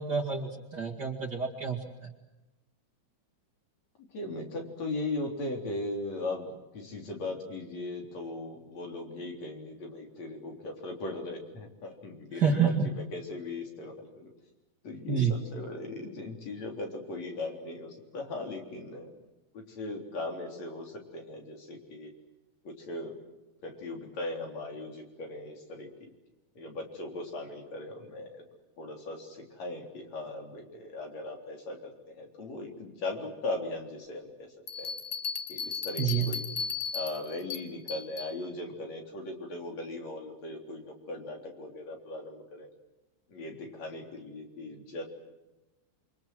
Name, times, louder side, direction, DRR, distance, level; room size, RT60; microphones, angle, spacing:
voice 1, 0.0-2.1 12.3-12.9 15.1-15.3 36.0-36.3, right 6 dB, 35° right, 3 dB, 2.5 m, -28 dB
voice 2, 4.1-14.3 14.8-19.1 19.5-22.1 22.6-23.2 23.6-25.9 26.6-28.4 28.8-34.5 34.8-34.9 35.5-36.4 36.9-42.7 43.3-45.0, left 2 dB, 60° left, 3 dB, 4.9 m, -38 dB
sound 1, 34.7-38.3, left 5 dB, 40° left, 1.4 m, -36 dB
27.5 x 25.0 x 7.7 m, 1.0 s
omnidirectional pair, 3.5 m